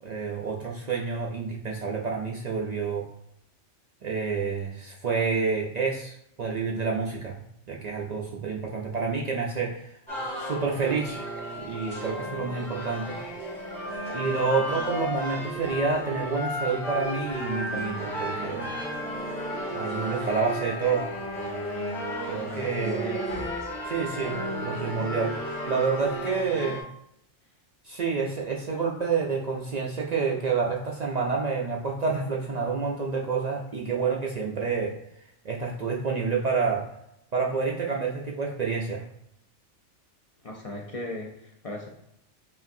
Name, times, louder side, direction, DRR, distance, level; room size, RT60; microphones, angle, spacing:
voice 1, 0.0-3.0 4.0-7.4 7.7-9.9 10.4-11.2 11.5-13.2 14.1-18.7 19.7-21.1 22.3-23.1 23.8-25.4 25.7-26.8 27.8-34.9 35.4-36.8 37.3-39.0, right 5 dB, 65° right, -1 dB, 0.4 m, -28 dB
sound 1, 10.1-26.8, equal, 40° left, 1.7 m, -33 dB
voice 2, 22.5-23.2 40.4-41.9, left 2 dB, 65° left, -1 dB, 0.3 m, -37 dB
5.6 x 2.5 x 2.6 m, 0.78 s
omnidirectional pair, 1.2 m